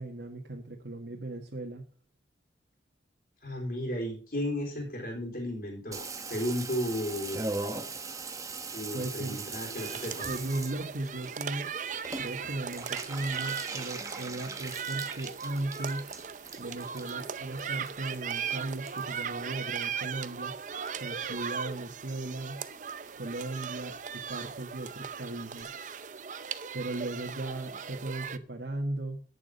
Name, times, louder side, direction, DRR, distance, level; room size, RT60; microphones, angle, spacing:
voice 1, 0.0-1.8 8.9-9.4 10.3-11.7 12.2-16.1 16.6-20.6 20.9-22.6 23.1-25.7 26.7-29.2, right 2 dB, 80° right, -1 dB, 1.7 m, -37 dB
voice 2, 3.4-7.4 8.7-10.3, equal, 55° left, -1 dB, 4.0 m, -34 dB
Water tap faucet / Bathtub (filling or washing), 5.9-20.5 20.7-21.5 21.8-21.9 22.1-22.2 22.4-22.8 23.1-23.2 23.4-23.5 23.8-23.9 24.1-24.2 24.4-24.5 24.8-24.9 25.2-25.3 25.6-25.7, right 3 dB, 20° right, 1.0 m, -41 dB
sound 1, 9.8-28.4, right 7 dB, 45° right, 0.6 m, -38 dB
11.0 x 8.7 x 5.4 m, 0.41 s
head